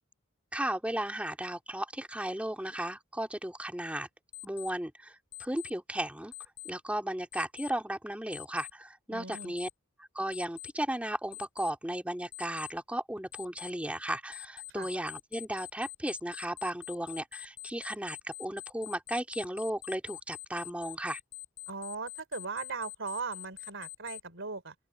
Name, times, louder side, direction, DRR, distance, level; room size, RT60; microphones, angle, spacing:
voice 1, 0.5-4.1 4.4-6.3 6.6-9.7 10.1-21.2, right 1 dB, 5° right, 2.8 m, -35 dB
Alarm, 4.3-4.7 5.3-5.7 6.3-6.7 7.3-7.7 8.3-8.7 9.3-9.7 10.3-10.7 11.3-11.7 12.3-12.7 13.3-13.7 14.3-24.2, left 18 dB, 65° left, 6.4 m, -44 dB
voice 2, 9.1-9.5 14.7-14.9 21.7-24.7, right 4 dB, 60° right, 3.7 m, -38 dB
open air
head